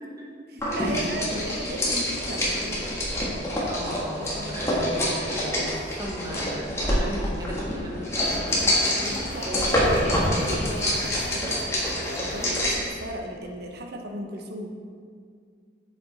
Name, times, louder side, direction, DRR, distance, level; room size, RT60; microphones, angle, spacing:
voice 1, 0.0-0.8 3.7-8.5 9.4-9.9 11.3-11.4, equal, 20° right, -3 dB, 1.1 m, -37 dB
voice 2, 0.5-2.9 4.2-4.6 8.6-14.7, right 1 dB, 55° right, 2 dB, 0.9 m, -36 dB
sound 1, 0.6-12.9, equal, 15° left, 1.5 m, -26 dB
sound 2, 8.2-12.6, left 1 dB, 40° left, 1.2 m, -41 dB
7.6 x 6.7 x 4.0 m, 2.1 s
head